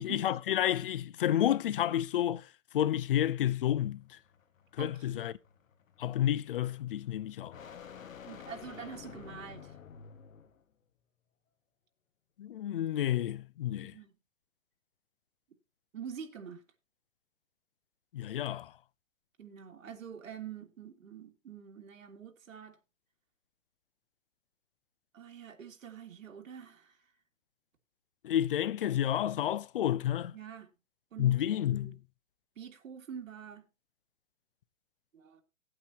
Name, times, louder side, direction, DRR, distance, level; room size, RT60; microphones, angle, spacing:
voice 1, 0.0-2.5 2.7-4.2 4.8-5.3 6.0-7.6 12.4-13.9 18.1-18.7 28.2-30.3 31.2-32.0, left 11 dB, 45° left, 0.5 m, -30 dB
sound 1, 3.6-10.7, left 7 dB, 85° left, 1.9 m, -51 dB
voice 2, 4.8-5.3 8.3-9.8 13.8-14.1 15.9-16.6 19.4-22.8 25.1-27.0 30.3-30.7 31.1-31.9 32.6-33.7 35.1-35.4, right 7 dB, 85° right, 2.9 m, -46 dB
17.0 x 8.7 x 2.9 m
hypercardioid pair, 165°, 39 cm